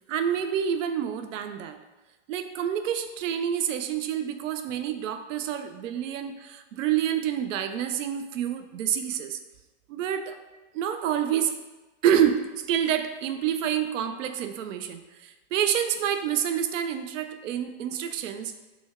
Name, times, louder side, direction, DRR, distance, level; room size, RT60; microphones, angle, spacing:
voice 1, 0.1-1.8 2.3-9.4 9.9-10.4 10.7-11.5 12.0-18.6, right 9 dB, 80° right, 8 dB, 0.6 m, -28 dB
6.0 x 2.2 x 3.5 m, 1.1 s
supercardioid pair, 150°, 38 cm